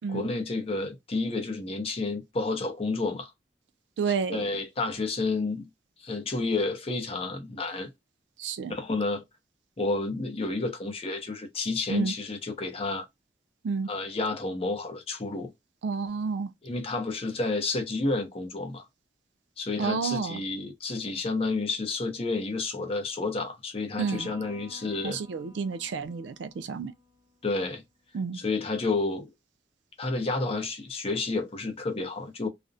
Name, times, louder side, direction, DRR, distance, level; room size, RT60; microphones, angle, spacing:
voice 1, 0.1-3.3 4.3-5.7 6.0-7.9 8.7-9.2 9.8-13.1 13.9-15.5 16.6-18.9 19.6-25.2 27.4-27.8 28.3-29.3 30.0-32.5, left 3 dB, 35° left, 0.6 m, -30 dB
voice 2, 4.0-4.5 8.4-8.8 11.9-12.1 13.6-13.9 15.8-16.5 19.8-20.4 24.0-24.3 25.0-26.9 28.1-28.4, right 5 dB, 85° right, 0.4 m, -30 dB
Electric guitar, 24.0-27.5, left 2 dB, 30° right, 0.8 m, -52 dB
2.4 x 2.0 x 2.5 m
head